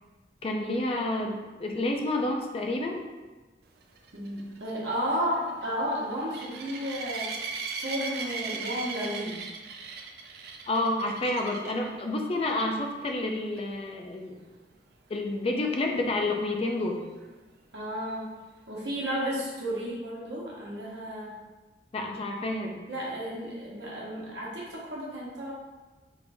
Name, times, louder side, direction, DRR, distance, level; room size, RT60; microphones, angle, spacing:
voice 1, 0.4-3.0 10.7-14.4 15.1-17.0 21.9-22.9, left 2 dB, 35° left, 2 dB, 0.4 m, -29 dB
sound 1, 4.0-11.9 12.5-12.8 13.1-13.2 13.6-13.7 17.2-17.3, right 4 dB, 60° right, 0.4 m, -38 dB
voice 2, 4.1-7.3 7.8-9.4 17.7-18.3 18.7-21.4 22.9-25.5, equal, 75° right, -5 dB, 1.0 m, -33 dB
3.2 x 2.5 x 3.3 m, 1.2 s
head